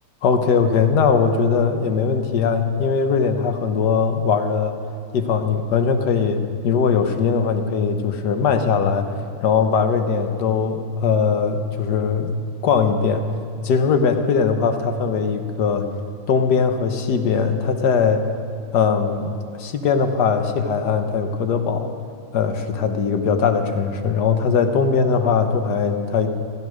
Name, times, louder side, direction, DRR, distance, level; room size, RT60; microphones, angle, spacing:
voice 1, 0.2-4.7 5.1-9.1 9.4-12.3 12.6-13.3 13.6-15.9 16.3-18.2 18.7-19.3 19.6-21.9 22.3-26.3, left 5 dB, 60° left, 7 dB, 1.5 m, -20 dB
15.5 x 14.5 x 6.3 m, 2.4 s
omnidirectional pair, 2.2 m